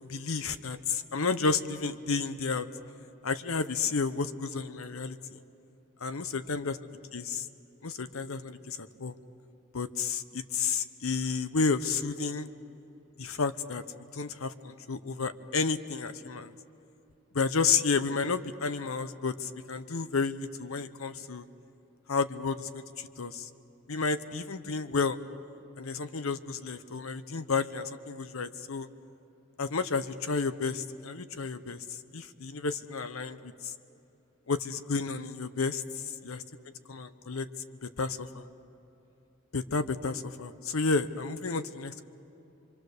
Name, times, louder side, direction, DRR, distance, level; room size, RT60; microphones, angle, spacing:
voice 1, 0.0-2.7 3.2-5.4 6.0-7.5 7.8-9.1 9.7-12.5 13.2-13.8 14.1-16.5 17.3-21.4 22.1-23.5 23.9-25.2 25.8-28.9 29.6-31.8 32.1-33.7 34.5-36.4 36.9-37.5 37.8-38.4 39.5-42.0, left 4 dB, 85° left, 12 dB, 0.9 m, -31 dB
25.5 x 24.0 x 6.7 m, 3.0 s
head